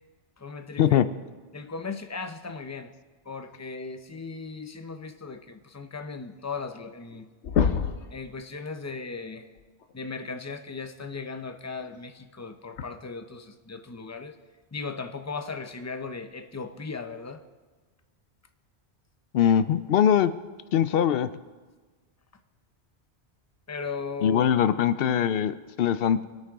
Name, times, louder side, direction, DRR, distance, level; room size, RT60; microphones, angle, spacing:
voice 1, 0.4-1.0 1.5-2.9 3.3-7.3 8.1-9.5 9.9-14.4 14.7-17.4 23.7-24.4, left 4 dB, 20° left, 7 dB, 0.5 m, -37 dB
sound 1, 6.5-6.6 6.9-7.2 7.4-8.1 9.8-9.9 11.8-11.9 12.8-12.9, left 7 dB, 85° left, 1.0 m, -25 dB
voice 2, 19.3-20.3 20.7-21.3 24.2-26.2, left 9 dB, 65° left, 13 dB, 0.7 m, -22 dB
22.0 x 8.8 x 3.5 m, 1.3 s
omnidirectional pair, 1.1 m